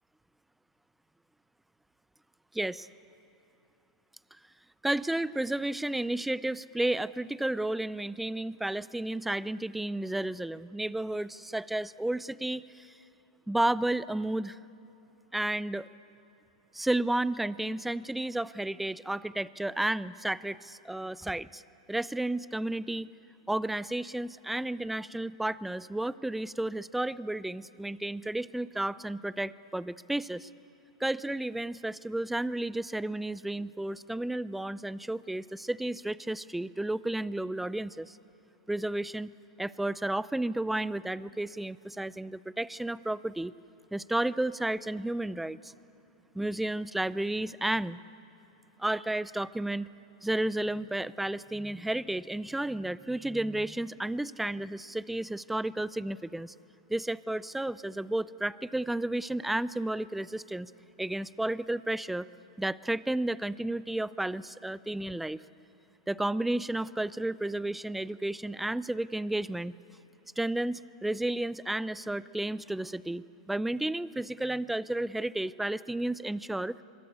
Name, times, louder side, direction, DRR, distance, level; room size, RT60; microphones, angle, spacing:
voice 1, 2.5-2.9 4.8-12.9 13.5-14.6 15.3-15.9 16.7-21.6 21.9-23.1 23.5-30.5 31.0-38.2 38.7-39.3 39.6-43.5 43.9-45.7 46.3-48.0 48.8-49.9 50.2-56.5 56.9-60.7 61.0-62.3 62.6-65.4 66.1-69.7 70.4-76.8, right 1 dB, 5° right, 19 dB, 0.5 m, -32 dB
25.5 x 22.0 x 8.5 m, 2.9 s
hypercardioid pair, 110°, 4 cm